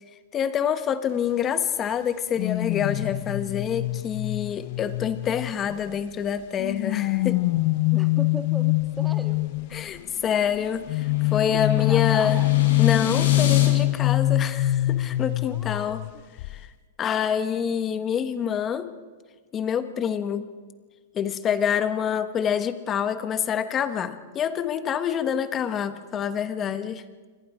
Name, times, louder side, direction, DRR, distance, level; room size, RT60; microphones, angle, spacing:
voice 1, 0.3-7.4 9.7-12.4 12.8-16.0 16.5-16.7 17.0-18.9 19.5-20.5 21.1-27.0, left 8 dB, 20° left, 11 dB, 1.3 m, -27 dB
sound 1, 2.4-6.0 6.6-9.8 10.9-16.1 16.4-16.7, left 19 dB, 45° left, 0.6 m, -24 dB
voice 2, 7.9-9.4 11.5-12.5 15.4-16.0, right 1 dB, 5° right, 6 dB, 1.7 m, -38 dB
sound 2, 9.4-13.7, left 5 dB, 75° left, 7.5 m, -33 dB
28.0 x 24.0 x 5.1 m, 1.4 s
supercardioid pair, 155°, 0 cm